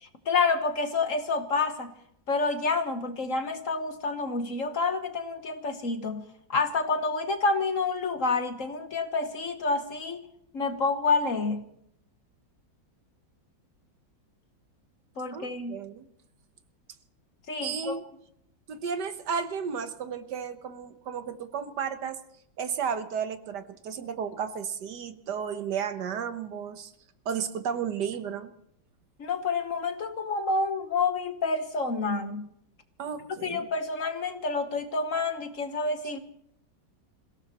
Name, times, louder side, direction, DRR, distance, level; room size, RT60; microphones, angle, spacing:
voice 1, 0.2-1.9 2.3-10.2 10.5-11.7 15.2-15.8 17.5-18.0 29.2-32.5 33.4-36.2, left 3 dB, 50° left, 8 dB, 1.4 m, -28 dB
voice 2, 15.3-16.1 17.6-18.1 18.7-22.2 22.6-26.9 27.2-28.5 33.0-33.7, right 7 dB, 65° right, 10 dB, 1.6 m, -33 dB
27.5 x 17.0 x 3.0 m, 0.71 s
omnidirectional pair, 2.0 m